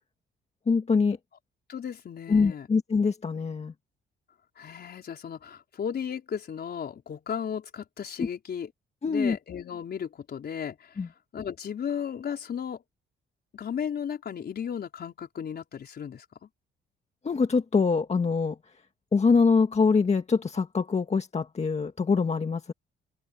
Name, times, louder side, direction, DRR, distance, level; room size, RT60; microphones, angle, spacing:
voice 1, 0.7-1.2 2.3-3.7 9.0-9.4 11.0-11.1 17.2-18.6 19.1-22.7, left 5 dB, 35° left, 1.8 m, -24 dB
voice 2, 1.7-2.7 4.6-8.7 9.0-12.8 13.5-16.5, left 8 dB, 55° left, 4.8 m, -35 dB
open air
cardioid pair, 90°, 20 cm